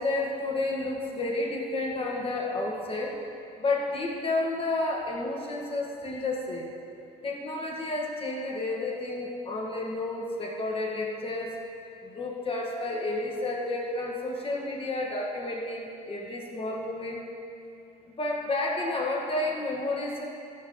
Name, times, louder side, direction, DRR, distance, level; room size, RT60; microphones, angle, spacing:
voice 1, 0.0-3.2 3.6-6.7 7.2-11.6 12.0-17.2 18.2-20.2, left 2 dB, 35° left, -1 dB, 1.7 m, -31 dB
14.5 x 6.2 x 3.9 m, 2.6 s
cardioid pair, 110°, 17 cm